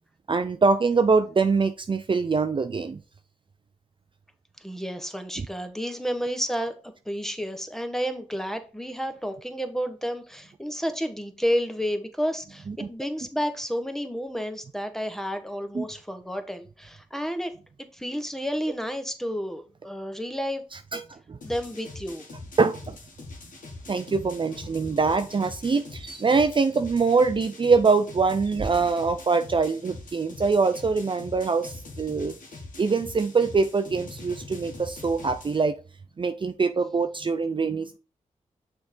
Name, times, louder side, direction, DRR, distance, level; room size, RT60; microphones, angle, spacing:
voice 1, 0.3-3.0 5.4-5.5 12.7-12.9 15.7-15.8 20.9-21.4 22.6-23.0 23.9-32.3 32.8-35.8 36.2-38.0, right 4 dB, 40° right, 0.5 m, -24 dB
voice 2, 4.6-6.8 7.0-17.5 17.9-20.6 21.4-22.2, equal, 5° left, 1.1 m, -31 dB
sound 1, 21.4-35.6, left 2 dB, 85° left, 1.5 m, -43 dB
6.2 x 3.6 x 4.4 m
cardioid pair, 50°, 13 cm